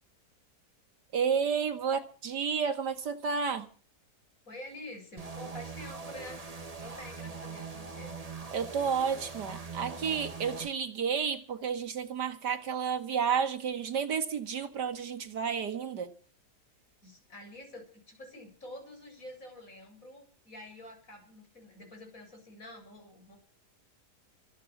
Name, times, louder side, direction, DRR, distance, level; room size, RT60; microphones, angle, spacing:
voice 1, 1.1-3.7 8.5-16.1, right 6 dB, 85° right, 2.4 m, -31 dB
voice 2, 4.5-6.4 6.8-8.1 17.0-23.4, left 1 dB, 55° left, 7.9 m, -47 dB
sound 1, 5.2-10.7, right 4 dB, 25° right, 1.6 m, -42 dB
25.0 x 8.8 x 6.0 m
omnidirectional pair, 1.8 m